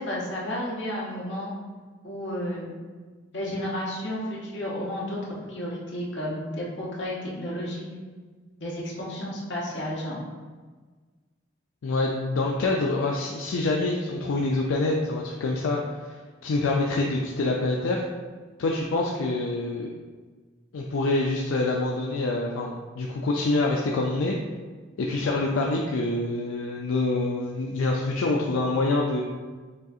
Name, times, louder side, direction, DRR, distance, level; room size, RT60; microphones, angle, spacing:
voice 1, 0.0-1.5 2.0-2.7 3.3-7.9 8.6-10.2, left 1 dB, 60° left, -5 dB, 1.0 m, -32 dB
voice 2, 11.8-16.1 16.4-18.1 18.6-19.9 20.7-24.3 25.0-29.2, left 2 dB, 80° left, -1 dB, 0.4 m, -26 dB
6.3 x 2.4 x 2.7 m, 1.4 s
head